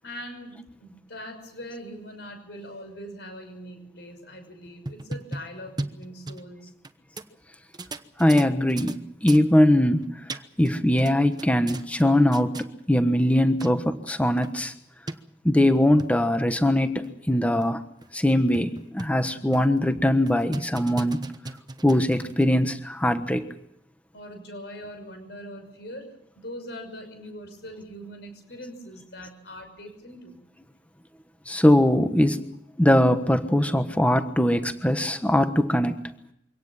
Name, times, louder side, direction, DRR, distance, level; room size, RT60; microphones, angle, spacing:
voice 1, 0.0-6.7 24.1-30.4, equal, 70° left, 7 dB, 6.1 m, -41 dB
sound 1, 4.7-6.9 7.2-7.3 7.7-9.0 9.3-9.5 10.0-10.7 11.0-12.1 12.3-12.7 13.3-13.4 13.6-13.7 14.1-14.2 14.4-14.5 15.1-15.2 15.8-16.1 16.6-16.7 17.0-17.1 17.6-17.7 18.0-18.1 18.5-19.2 19.5-19.8 20.3-22.4, right 2 dB, 25° right, 1.1 m, -36 dB
voice 2, 8.2-10.1 10.6-14.7 15.4-17.8 18.1-21.2 21.8-23.5 31.5-32.4 32.8-36.0, left 1 dB, 10° left, 9 dB, 1.2 m, -21 dB
24.5 x 18.0 x 7.4 m, 0.76 s
head